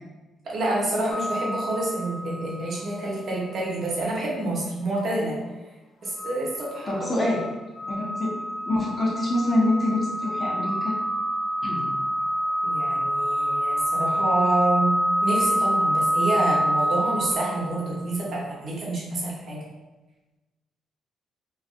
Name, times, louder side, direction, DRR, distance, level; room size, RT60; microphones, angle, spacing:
voice 1, 0.4-5.4 6.0-7.0 12.6-19.6, right 2 dB, 55° right, -4 dB, 0.9 m, -28 dB
sound 1, 1.1-3.0 3.4-3.5 6.2-18.0, equal, 50° left, 0.3 m, -27 dB
voice 2, 6.9-7.4 7.9-8.3 8.6-11.0 11.6-11.9, left 1 dB, 35° left, -4 dB, 0.7 m, -25 dB
2.5 x 2.2 x 2.5 m, 1.1 s
cardioid pair, 90°, 0 cm